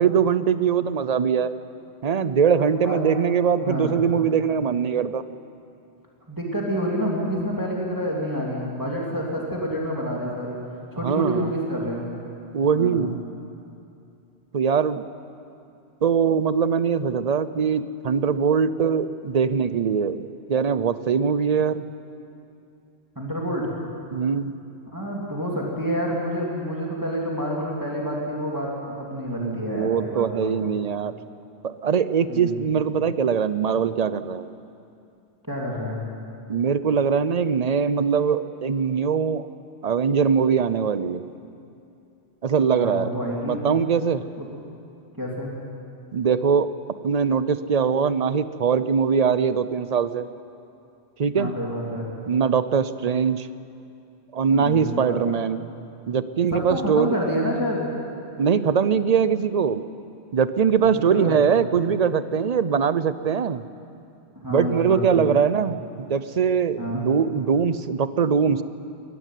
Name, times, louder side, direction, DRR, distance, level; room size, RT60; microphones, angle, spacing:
voice 1, 0.0-1.5 2.0-5.2 11.0-11.5 12.5-13.2 14.5-15.0 16.0-21.9 24.1-24.5 29.4-31.1 31.6-34.5 36.5-39.5 39.8-41.3 42.4-43.1 43.5-44.2 46.1-46.7 47.0-50.3 51.2-51.5 52.3-53.5 54.3-55.6 56.1-57.2 58.4-59.8 60.3-63.6 64.5-68.6, right 6 dB, 45° right, 14 dB, 0.6 m, -22 dB
voice 2, 2.6-3.0 3.6-4.0 6.3-10.6 10.9-12.1 12.7-13.1 23.2-23.7 24.9-30.7 32.3-32.6 35.5-36.0 42.8-43.6 44.4-44.5 45.2-45.5 51.4-52.1 54.5-55.4 56.5-57.9 60.8-61.9 64.3-65.4 66.8-67.1, equal, 20° right, -4 dB, 3.0 m, -28 dB
21.5 x 14.0 x 9.3 m, 2.7 s
omnidirectional pair, 1.1 m